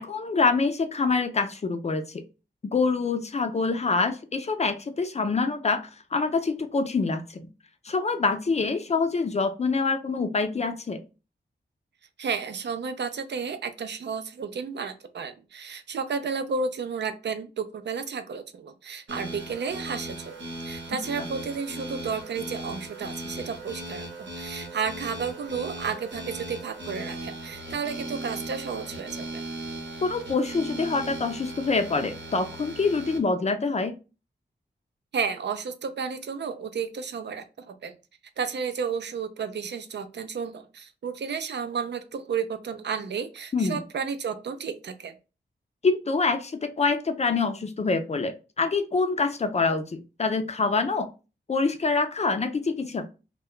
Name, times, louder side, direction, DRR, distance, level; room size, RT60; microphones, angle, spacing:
voice 1, 0.0-2.2 2.7-7.5 7.8-11.0 20.9-21.0 30.0-33.9 43.5-43.8 45.8-51.1 51.5-53.1, left 4 dB, 35° left, 7 dB, 0.4 m, -26 dB
voice 2, 12.2-20.4 20.6-24.1 24.4-29.5 35.1-37.9 38.4-45.1, right 5 dB, 70° right, 9 dB, 0.4 m, -32 dB
sound 1, 19.1-33.2, right 1 dB, 85° right, 0.9 m, -38 dB
2.2 x 2.1 x 3.6 m, 0.31 s
wide cardioid pair, 145°, 19 cm